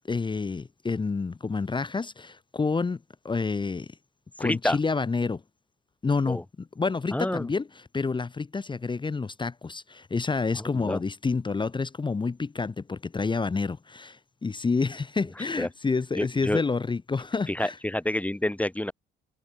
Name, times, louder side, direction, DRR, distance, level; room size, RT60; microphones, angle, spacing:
voice 1, 0.1-3.0 3.2-3.9 4.4-5.4 6.0-6.4 6.8-17.8, left 4 dB, 25° left, 0.9 m, -28 dB
voice 2, 4.4-4.8 6.3-6.4 7.1-7.5 10.6-11.0 15.6-15.7 16.1-16.6 17.5-18.9, left 1 dB, 5° left, 2.2 m, -28 dB
cardioid pair, 90°, 20 cm